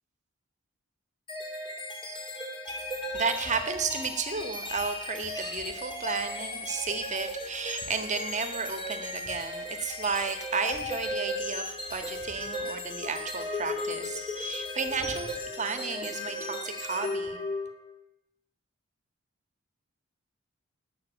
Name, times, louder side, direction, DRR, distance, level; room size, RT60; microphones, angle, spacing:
sound 1, 1.3-17.9, left 1 dB, 25° left, 2.8 m, -36 dB
voice 1, 2.7-17.4, right 5 dB, 35° right, 7 dB, 1.5 m, -33 dB
18.5 x 6.4 x 8.5 m, 0.80 s
head